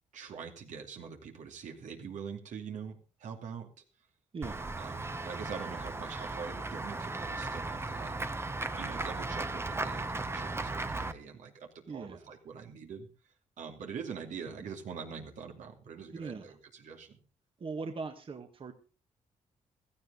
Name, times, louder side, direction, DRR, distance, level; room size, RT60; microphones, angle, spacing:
voice 1, 0.1-3.7 4.8-8.1 8.8-13.1 13.6-17.2, right 6 dB, 75° right, 4 dB, 2.7 m, -44 dB
voice 2, 4.3-4.7 11.9-12.4 16.1-16.6 17.6-18.7, right 4 dB, 45° right, 6 dB, 1.7 m, -40 dB
Run / Walk footsteps / Bell, 4.4-11.1, right 2 dB, 20° right, 1.0 m, -36 dB
16.0 x 13.5 x 4.0 m, 0.33 s
cardioid pair, 85°, 13 cm